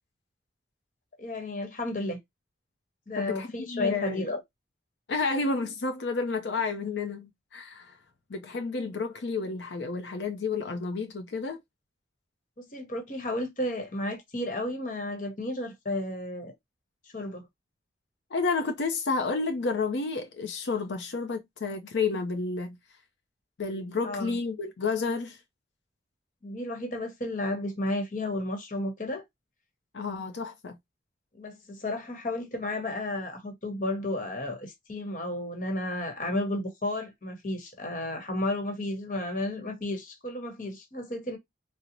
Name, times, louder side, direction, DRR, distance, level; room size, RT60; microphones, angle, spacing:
voice 1, 1.2-2.2 3.1-4.4 12.6-16.5 17.1-17.4 24.0-24.4 26.4-29.2 31.3-41.4, left 1 dB, 45° left, 1.0 m, -32 dB
voice 2, 3.2-4.3 5.1-8.0 8.3-11.6 18.3-22.8 23.6-25.4 29.9-30.8, left 4 dB, 85° left, 0.5 m, -31 dB
3.8 x 2.0 x 2.8 m
head